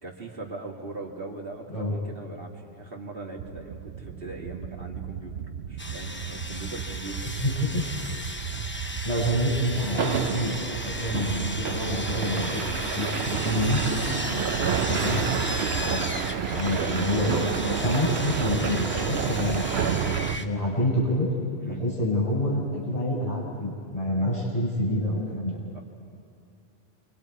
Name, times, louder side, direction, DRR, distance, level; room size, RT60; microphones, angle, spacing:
voice 1, 0.0-5.3 5.7-7.4 14.3-15.1 21.6-21.8 25.7-25.8, right 3 dB, 60° right, 0 dB, 2.4 m, -39 dB
sound 1, 3.4-20.4, right 7 dB, 85° right, 1.0 m, -30 dB
Sawing, 5.8-20.4, left 1 dB, 10° left, 0.7 m, -35 dB
voice 2, 7.3-7.8 9.0-10.5 10.8-13.8 14.9-15.2 15.8-16.2 16.5-19.9 20.3-21.3 21.6-25.6, left 1 dB, 35° left, -6 dB, 6.2 m, -27 dB
28.5 x 24.0 x 4.8 m, 2.4 s
omnidirectional pair, 1.1 m